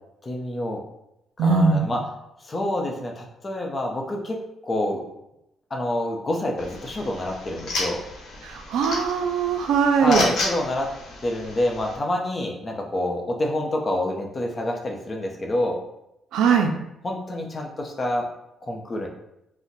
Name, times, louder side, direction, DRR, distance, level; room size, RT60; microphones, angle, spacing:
voice 1, 0.2-0.8 1.4-2.0 2.4-4.4 4.6-5.0 5.7-8.0 10.0-10.9 11.2-15.8 17.0-18.3 18.6-19.1, left 1 dB, 30° left, 1 dB, 0.6 m, -27 dB
voice 2, 1.4-1.9 8.4-10.3 16.3-16.7, right 5 dB, 85° right, 5 dB, 0.3 m, -20 dB
sound 1, 6.6-12.0, left 2 dB, 65° left, 0.9 m, -33 dB
2.6 x 2.1 x 3.8 m, 0.85 s
cardioid pair, 90°, 0 cm